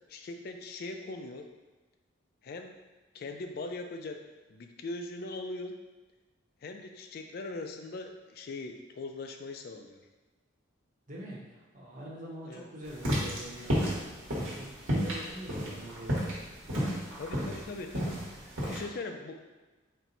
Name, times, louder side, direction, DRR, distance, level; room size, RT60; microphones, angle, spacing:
voice 1, 0.1-1.5 2.4-2.8 3.1-4.2 4.5-5.8 6.6-10.1 12.5-12.7 17.2-19.4, left 2 dB, 50° left, 5 dB, 0.3 m, -40 dB
voice 2, 11.1-14.0 14.5-16.2 16.6-16.9, right 1 dB, 40° right, -4 dB, 0.8 m, -44 dB
sound 1, 12.9-18.8, equal, 85° right, 1.2 m, -31 dB
4.4 x 2.1 x 3.9 m, 1.2 s
head